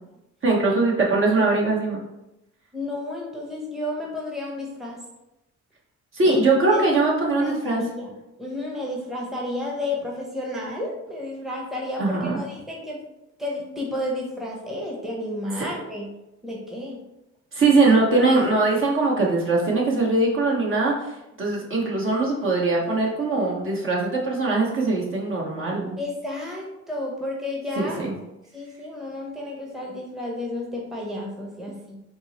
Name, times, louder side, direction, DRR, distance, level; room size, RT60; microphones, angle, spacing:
voice 1, 0.4-2.0 6.1-7.8 12.0-12.3 17.5-20.9 21.4-26.0 27.8-28.1, right 3 dB, 45° right, -3 dB, 1.2 m, -21 dB
voice 2, 2.7-5.0 6.2-7.0 7.4-13.0 13.4-16.1 16.4-17.0 26.0-28.0 28.5-32.0, left 1 dB, ahead, -3 dB, 0.9 m, -32 dB
4.4 x 2.0 x 4.2 m, 0.91 s
cardioid pair, 90°, 30 cm